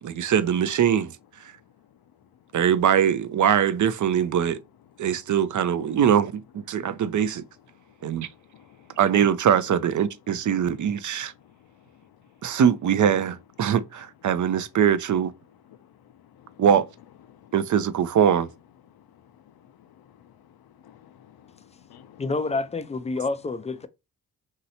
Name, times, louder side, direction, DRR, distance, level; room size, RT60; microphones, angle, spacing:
voice 1, 0.0-1.1 2.5-4.6 5.0-6.3 6.7-7.4 8.0-8.3 9.0-11.3 12.4-15.3 16.6-16.9 17.5-18.5, right 8 dB, 45° right, 0.5 m, -22 dB
voice 2, 7.7-9.0 11.2-12.6 15.7-16.6 17.3-17.5 18.9-22.3, left 10 dB, 55° left, 0.6 m, -54 dB
voice 3, 22.2-23.9, left 3 dB, 15° left, 0.4 m, -28 dB
3.1 x 2.8 x 2.7 m
supercardioid pair, 40°, 45 cm